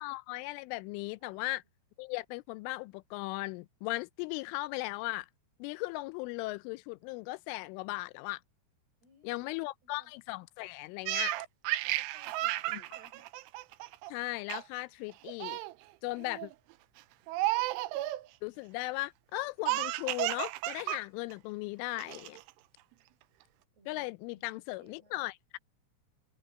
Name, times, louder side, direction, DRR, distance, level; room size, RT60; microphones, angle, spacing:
voice 1, 0.0-1.6 2.0-5.3 5.6-8.4 9.2-11.3 14.1-15.6 16.0-16.5 18.4-22.4 23.9-25.6, left 21 dB, 85° left, 3.0 m, -37 dB
voice 2, 1.2-1.6 9.0-10.1 11.2-11.4 11.8-13.3 23.7-25.3, right 4 dB, 55° right, 8.4 m, -62 dB
Laughter, 11.1-14.1 14.5-14.8 15.1-15.7 16.2-16.5 17.3-18.3 19.7-21.0 21.3-21.4 22.0-22.5, right 17 dB, 90° right, 3.2 m, -33 dB
omnidirectional pair, 5.7 m